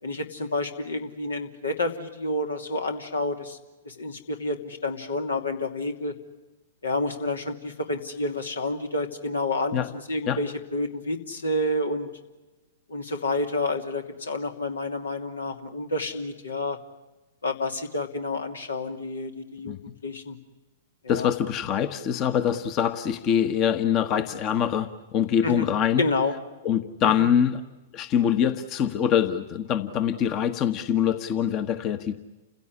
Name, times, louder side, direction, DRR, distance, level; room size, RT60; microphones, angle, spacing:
voice 1, 0.0-3.6 3.8-6.1 6.8-12.1 12.9-16.8 17.4-19.8 20.0-20.4 21.0-21.3 25.4-25.7 26.0-26.3 27.0-27.3, left 2 dB, 80° left, 5 dB, 2.9 m, -29 dB
voice 2, 21.1-26.0 26.6-27.6 27.9-32.1, left 9 dB, 35° left, 10 dB, 1.3 m, -24 dB
29.5 x 16.5 x 9.9 m, 1.1 s
figure-of-eight pair, 110°, 0 cm